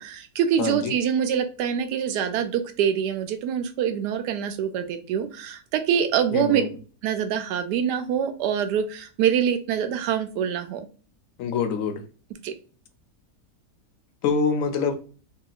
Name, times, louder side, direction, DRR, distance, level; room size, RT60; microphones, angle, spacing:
voice 1, 0.0-6.6 7.0-10.9 12.4-12.5, right 8 dB, 85° right, 1.2 m, -25 dB
voice 2, 0.6-0.9 6.3-6.7 11.4-12.0 14.2-14.9, left 5 dB, 65° left, 0.8 m, -25 dB
2.8 x 2.8 x 2.3 m
omnidirectional pair, 1.7 m